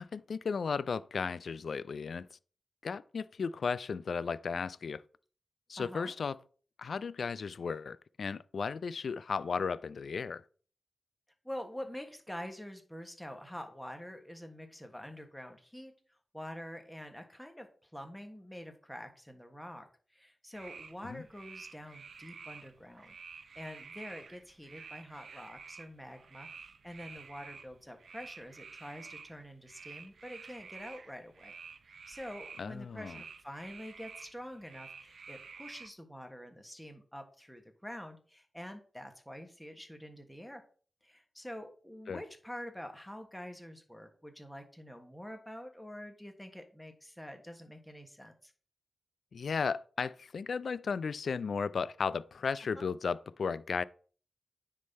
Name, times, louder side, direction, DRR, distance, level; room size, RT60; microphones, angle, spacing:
voice 1, 0.0-2.4 2.8-5.0 5.7-6.4 6.8-10.4 21.0-21.2 32.6-33.2 42.1-42.2 49.3-53.8, left 5 dB, 75° left, 0.3 m, -35 dB
voice 2, 5.8-6.1 11.4-15.9 16.3-19.9 20.1-31.5 31.9-40.6 41.0-48.5 52.7-52.9, equal, 5° left, 1.4 m, -46 dB
sound 1, 20.5-35.9, right 5 dB, 80° right, 0.5 m, -50 dB
9.3 x 3.8 x 4.1 m
cardioid pair, 65°, 0 cm